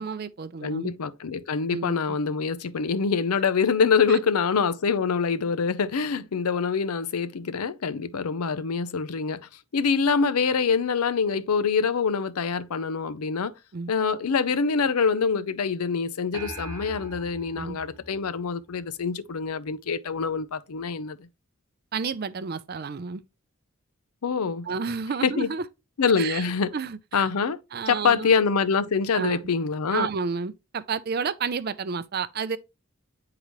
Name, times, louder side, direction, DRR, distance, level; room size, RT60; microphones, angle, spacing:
voice 1, 0.0-0.9 1.7-2.0 4.1-4.2 13.7-13.9 17.5-17.8 21.9-23.2 24.6-25.7 26.2-26.5 26.7-27.3 27.7-28.3 29.1-29.4 29.9-32.6, right 5 dB, 45° right, 0.4 m, -31 dB
voice 2, 0.6-13.5 13.9-21.2 24.2-24.7 25.2-25.5 26.0-26.7 27.1-27.6 27.9-30.1, left 5 dB, 90° left, 0.6 m, -25 dB
sound 1, 16.3-19.0, right 2 dB, 10° right, 1.0 m, -41 dB
9.4 x 3.8 x 3.0 m
head